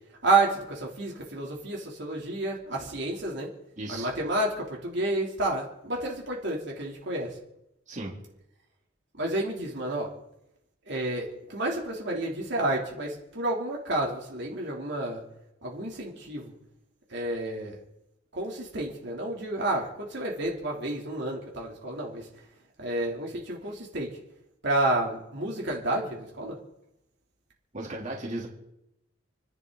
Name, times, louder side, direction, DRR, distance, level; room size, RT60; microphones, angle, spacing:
voice 1, 0.2-3.5 3.9-7.4 9.2-10.1 10.9-15.2 15.6-16.5 17.1-17.8 18.3-22.3 22.8-24.1 24.6-26.6, right 2 dB, 60° right, -2 dB, 3.2 m, -30 dB
voice 2, 3.8-4.1 7.9-8.1 27.7-28.5, right 1 dB, 40° right, -2 dB, 3.3 m, -35 dB
29.5 x 11.0 x 4.0 m, 0.84 s
head